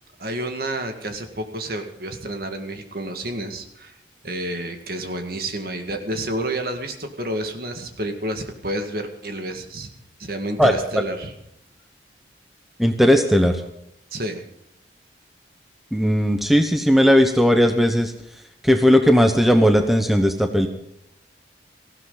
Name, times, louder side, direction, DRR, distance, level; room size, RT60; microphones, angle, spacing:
voice 1, 0.2-3.9 4.2-9.9 10.2-11.3 14.1-14.5, right 1 dB, 55° right, 5 dB, 2.0 m, -30 dB
voice 2, 10.6-11.0 12.8-13.6 15.9-18.1 18.6-20.7, equal, ahead, 6 dB, 1.0 m, -17 dB
18.0 x 16.0 x 4.0 m, 0.78 s
head